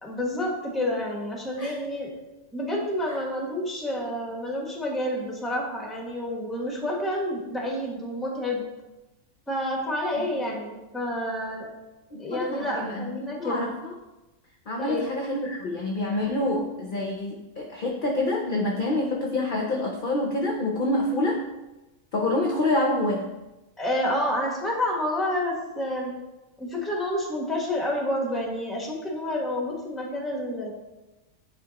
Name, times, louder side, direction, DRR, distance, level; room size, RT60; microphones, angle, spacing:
voice 1, 0.0-2.1 2.5-8.6 9.5-11.7 12.2-13.7 14.8-15.1 23.8-26.1 26.6-30.7, left 1 dB, ahead, -1 dB, 0.9 m, -29 dB
voice 2, 12.1-13.9 14.7-21.5 22.1-23.3, left 1 dB, 50° left, 1 dB, 0.6 m, -27 dB
9.8 x 3.5 x 2.8 m, 1.0 s
omnidirectional pair, 1.4 m